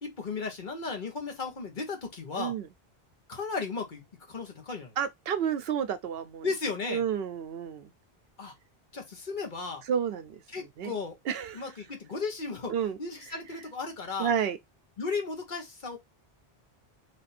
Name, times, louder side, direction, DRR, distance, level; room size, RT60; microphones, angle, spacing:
voice 1, 0.0-2.5 3.3-4.0 4.3-4.9 6.4-7.0 8.4-8.5 8.9-9.8 10.5-11.2 11.5-12.7 13.0-14.3 15.0-16.0, left 4 dB, 50° left, 1.1 m, -35 dB
voice 2, 2.4-2.7 5.0-6.5 6.9-7.9 9.9-10.4 10.8-10.9 11.3-11.6 12.7-13.0 14.2-14.6, right 8 dB, 70° right, 0.8 m, -30 dB
3.4 x 2.5 x 4.1 m
omnidirectional pair, 1.1 m